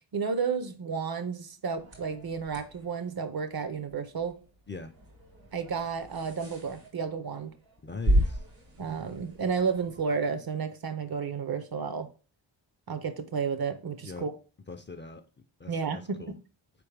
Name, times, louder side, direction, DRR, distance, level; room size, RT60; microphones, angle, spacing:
voice 1, 0.1-4.4 5.5-7.5 8.8-12.1 12.9-14.3 15.7-16.4, right 5 dB, 50° right, 0.6 m, -32 dB
sound 1, 1.7-10.0, equal, 90° right, 2.0 m, -34 dB
voice 2, 7.8-8.4 14.0-14.3 14.7-15.2 15.6-16.3, left 4 dB, 25° left, 0.4 m, -40 dB
4.4 x 3.4 x 3.2 m
wide cardioid pair, 85°, 46 cm